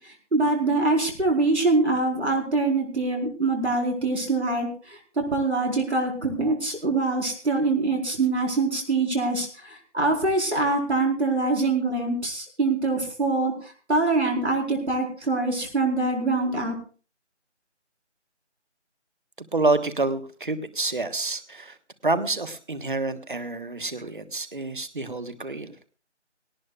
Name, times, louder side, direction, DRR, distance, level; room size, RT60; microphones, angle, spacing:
voice 1, 0.3-4.7 5.3-9.5 9.9-13.5 13.9-16.7, right 3 dB, 65° right, 1 dB, 4.6 m, -24 dB
voice 2, 19.5-21.8 22.0-25.7, right 3 dB, 45° right, 11 dB, 1.4 m, -28 dB
18.5 x 18.0 x 2.4 m, 0.38 s
figure-of-eight pair, 165°, 36 cm